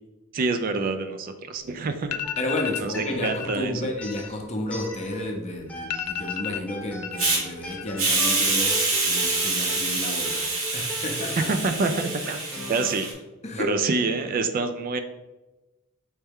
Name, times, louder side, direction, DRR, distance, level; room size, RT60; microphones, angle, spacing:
voice 1, 0.3-2.2 2.8-3.7 11.4-12.4 12.7-13.1 13.6-15.0, right 3 dB, 40° right, 8 dB, 0.3 m, -26 dB
sound 1, 1.6-1.7 2.0-2.9 3.2-3.6 3.9-5.3 5.6-5.7 5.9-7.3 7.6-8.2 8.5-9.1, left 10 dB, 90° left, 0.3 m, -33 dB
sound 2, 2.2-3.5 4.0-5.4 5.7-13.1, left 1 dB, 5° left, 0.9 m, -40 dB
voice 2, 2.4-11.5 12.6-12.7 13.4-13.8, left 1 dB, 30° left, 2 dB, 0.6 m, -32 dB
Hiss, 7.2-7.4 8.0-13.1, right 3 dB, 65° right, 1.2 m, -26 dB
4.2 x 3.3 x 3.5 m, 1.1 s
head